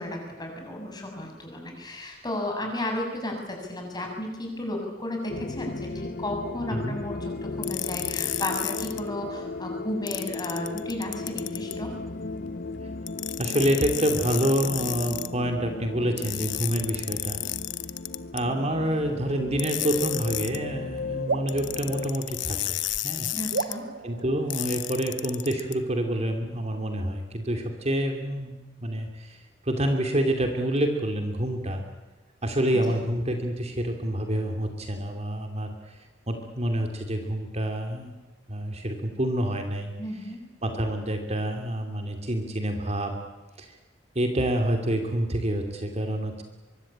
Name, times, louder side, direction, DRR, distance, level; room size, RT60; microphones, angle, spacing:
voice 1, 0.0-11.9 23.3-23.9 32.9-33.0 40.0-40.4, left 1 dB, 25° left, 2 dB, 7.4 m, -34 dB
sound 1, 5.3-22.1, left 3 dB, 55° left, 0.9 m, -36 dB
sound 2, 7.6-9.0 10.1-11.8 13.1-15.3 16.2-18.4 19.6-20.6 21.5-23.7 24.5-25.7, left 15 dB, 85° left, 1.0 m, -32 dB
voice 2, 13.4-17.4 18.3-23.3 24.0-31.8 32.4-36.0 36.3-38.1 38.5-39.9 40.6-43.2 43.6-43.8 44.1-46.4, right 1 dB, 35° right, 4 dB, 2.7 m, -27 dB
sound 3, 21.3-22.9 23.5-25.2, right 4 dB, 75° right, 1.0 m, -35 dB
24.0 x 24.0 x 8.8 m, 1.2 s
head